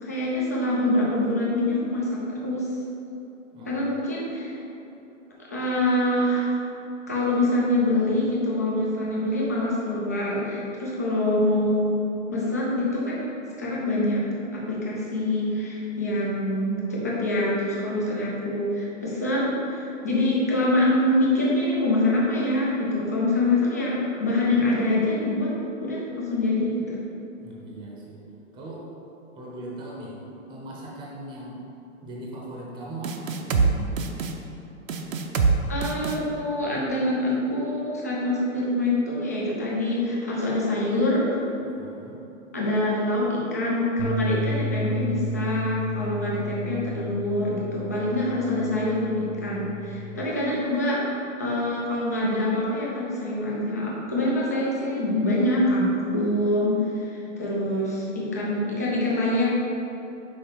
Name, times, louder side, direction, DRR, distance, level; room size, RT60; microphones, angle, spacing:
voice 1, 0.0-2.7 3.7-4.6 5.5-6.6 7.1-12.0 12.3-13.2 13.6-14.2 14.5-25.5 25.8-27.0 35.7-41.4 42.5-51.1 51.4-59.5, left 1 dB, 15° left, -5 dB, 0.3 m, -25 dB
voice 2, 3.5-3.8 27.4-28.2 28.5-28.9 29.3-30.2 30.5-31.7 32.0-33.9 41.6-42.2 50.1-50.3, right 1 dB, 10° right, -3 dB, 0.8 m, -39 dB
sound 1, 33.0-33.7 34.0-34.3 34.9-35.5 35.8-36.2, right 5 dB, 80° right, 0.8 m, -23 dB
sound 2, 44.0-50.2, equal, 65° left, 1.0 m, -32 dB
5.5 x 4.6 x 4.5 m, 2.9 s
hypercardioid pair, 150°, 39 cm